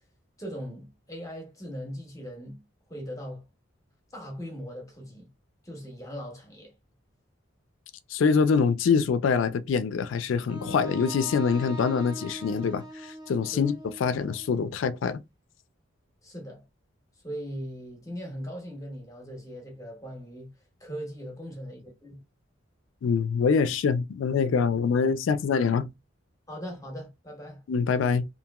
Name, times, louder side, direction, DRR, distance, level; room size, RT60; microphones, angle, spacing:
voice 1, 0.4-2.6 2.9-3.4 4.1-5.3 5.6-6.7 13.5-13.7 16.2-16.6 17.2-20.5 20.8-22.2 26.5-27.6, equal, 15° left, 0.8 m, -39 dB
voice 2, 8.1-15.2 23.0-25.9 27.7-28.2, left 5 dB, 75° left, 0.3 m, -25 dB
Wind instrument woodwind instrument, 10.5-14.5, left 1 dB, 20° right, 0.5 m, -42 dB
2.9 x 2.6 x 2.2 m
head